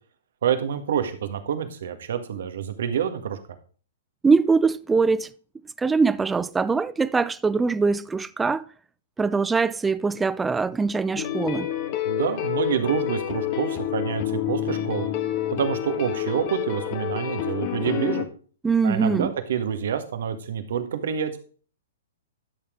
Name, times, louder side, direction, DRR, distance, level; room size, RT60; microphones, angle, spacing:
voice 1, 0.4-3.4 12.0-15.1 15.5-18.2 18.8-21.4, right 8 dB, 65° right, 1.7 m, -27 dB
voice 2, 4.2-5.3 5.8-8.6 9.2-11.7 18.6-19.3, right 4 dB, 10° right, 0.5 m, -22 dB
sound 1, 11.2-18.2, left 11 dB, 40° left, 1.4 m, -28 dB
12.5 x 6.7 x 3.8 m
hypercardioid pair, 120°, 0 cm